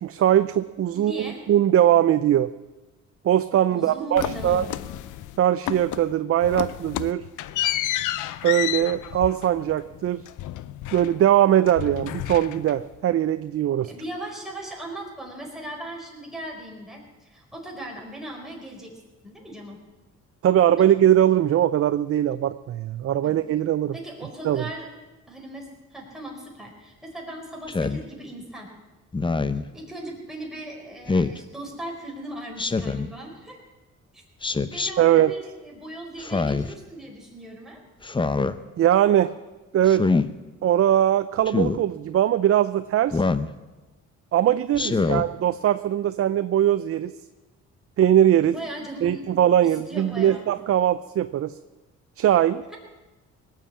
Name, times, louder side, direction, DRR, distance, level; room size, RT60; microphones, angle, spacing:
voice 1, 0.0-2.5 3.2-4.7 5.4-7.2 8.4-10.2 10.9-13.9 20.4-24.0 24.4-24.7 35.0-35.3 38.8-39.3 39.7-40.0 40.6-43.2 44.3-47.1 48.0-48.6 49.0-51.5 52.2-52.6, right 11 dB, 50° right, 13 dB, 0.5 m, -21 dB
voice 2, 0.9-1.4 3.7-4.9 13.9-18.9 19.2-19.8 20.8-20.9 23.2-23.3 23.9-24.9 25.3-28.7 29.5-33.6 34.1-34.2 34.7-37.8 44.8-45.2 48.4-49.3 49.9-50.5, right 1 dB, ahead, -1 dB, 4.7 m, -38 dB
sound 1, 4.2-5.4 5.7-6.1 6.4-11.4 11.7-13.0, left 13 dB, 80° left, 0.6 m, -31 dB
Speech synthesizer, 27.7-28.0 29.1-29.6 31.1-31.4 32.6-33.1 34.4-34.9 36.2-36.7 38.0-38.5 39.9-40.3 41.5-41.8 43.1-43.5 44.7-45.3, left 3 dB, 15° left, 0.6 m, -24 dB
19.0 x 7.4 x 8.6 m, 1.2 s
cardioid pair, 90°, 30 cm